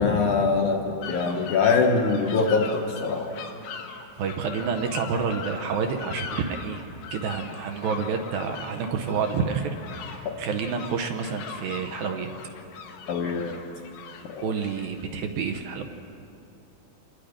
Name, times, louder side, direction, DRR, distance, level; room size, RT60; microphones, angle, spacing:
voice 1, 0.0-3.3 13.1-13.6 14.3-14.5, left 4 dB, 65° left, 0 dB, 2.1 m, -23 dB
sound 1, 1.0-15.0, left 6 dB, 85° left, 3.4 m, -41 dB
voice 2, 4.2-6.9 7.1-9.7 10.0-12.3 14.4-15.8, right 6 dB, 70° right, 5 dB, 2.5 m, -29 dB
26.5 x 20.5 x 5.1 m, 2.8 s
omnidirectional pair, 4.7 m